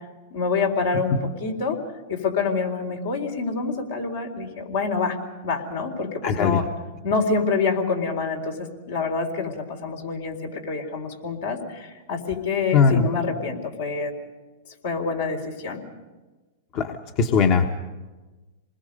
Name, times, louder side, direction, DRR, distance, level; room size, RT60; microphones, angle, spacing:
voice 1, 0.3-1.8 2.1-5.2 5.4-6.7 7.0-8.6 8.9-14.1 14.8-15.8, left 4 dB, 75° left, 2 dB, 4.0 m, -26 dB
voice 2, 6.2-6.6 12.7-13.1 16.7-17.7, left 5 dB, 45° left, 4 dB, 1.2 m, -20 dB
27.5 x 20.5 x 5.3 m, 1.2 s
hypercardioid pair, 125°, 0 cm